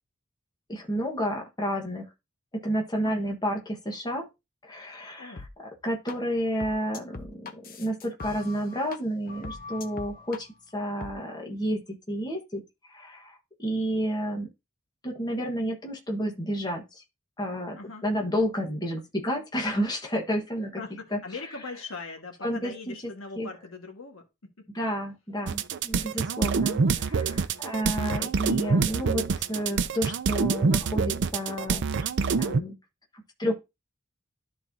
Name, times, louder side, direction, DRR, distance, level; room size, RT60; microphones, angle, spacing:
voice 1, 0.7-2.1 2.6-4.3 4.6-5.4 5.8-7.5 7.8-10.5 10.7-11.8 12.1-12.6 12.9-14.5 15.0-17.0 17.4-17.8 18.0-20.8 21.1-21.2 22.4-22.9 23.4-23.5 24.7-31.9 32.4-32.8 33.4-33.5, equal, 20° left, 1.3 m, -30 dB
voice 2, 3.0-3.3 5.2-5.4 17.8-18.0 20.8-24.3 24.6-24.7, left 3 dB, 65° left, 1.6 m, -40 dB
sound 1, 5.4-5.5 6.1-6.2 6.6-9.0 9.3-10.4 11.0-11.1, left 3 dB, 40° left, 0.8 m, -40 dB
sound 2, 25.5-32.6, right 5 dB, 55° right, 0.5 m, -26 dB
12.5 x 4.2 x 2.7 m
head